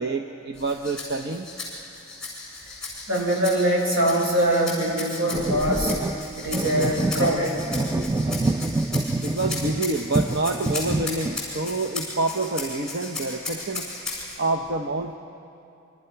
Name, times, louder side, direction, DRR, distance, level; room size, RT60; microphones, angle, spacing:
voice 1, 0.0-1.5 9.2-13.9 14.4-15.1, right 2 dB, 50° right, 3 dB, 0.8 m, -27 dB
Rattle (instrument), 0.5-14.4, left 3 dB, 5° left, 7.2 m, -36 dB
voice 2, 3.1-5.9 6.4-7.6, right 1 dB, 75° right, -1 dB, 5.8 m, -23 dB
sound 1, 5.3-9.8 10.2-11.4, right 2 dB, 15° right, 0.5 m, -26 dB
28.0 x 25.5 x 5.8 m, 2.7 s
head